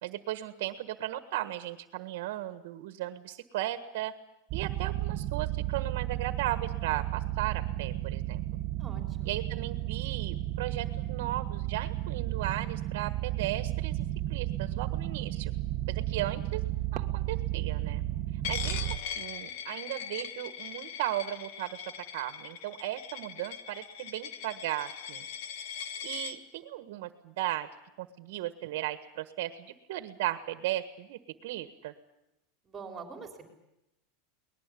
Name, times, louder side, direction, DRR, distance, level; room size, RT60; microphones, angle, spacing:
voice 1, 0.0-4.1 4.5-8.4 9.2-14.0 14.3-15.5 15.9-16.6 16.9-18.0 18.5-21.8 22.1-25.2 26.0-27.7 28.0-31.9, right 14 dB, 65° right, 9 dB, 1.5 m, -36 dB
sound 1, 4.5-19.0, right 15 dB, 40° right, 1.3 m, -33 dB
voice 2, 8.8-9.3 32.6-33.5, right 5 dB, 20° right, 3 dB, 3.7 m, -44 dB
Coin (dropping), 18.4-26.4, left 8 dB, 60° left, 1.5 m, -40 dB
22.5 x 20.0 x 8.6 m, 0.90 s
supercardioid pair, 155°, 0 cm